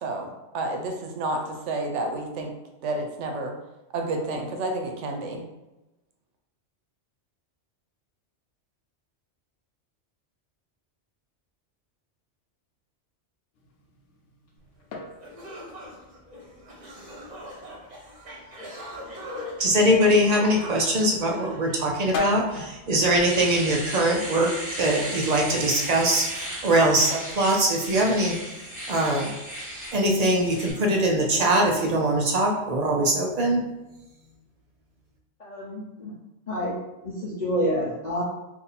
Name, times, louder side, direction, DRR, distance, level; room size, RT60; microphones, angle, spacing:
voice 1, 0.0-2.5 2.8-3.5 3.9-5.4, right 2 dB, 90° right, 3 dB, 1.0 m, -30 dB
sound 1, 13.5-24.2, left 5 dB, 85° left, 1.0 m, -41 dB
sound 2, 14.8-14.9 15.2-22.3, equal, 40° right, 0.9 m, -41 dB
voice 2, 19.6-24.5 24.8-28.3 28.9-29.3 29.9-33.6, right 1 dB, 65° right, 0 dB, 0.4 m, -22 dB
Domestic sounds home sounds, 22.5-22.6 23.0-30.7, equal, 15° right, 1.0 m, -36 dB
voice 3, 35.4-36.1 36.5-36.8 37.0-38.2, equal, 45° left, -7 dB, 0.6 m, -28 dB
2.6 x 2.6 x 4.0 m, 1.0 s
omnidirectional pair, 1.2 m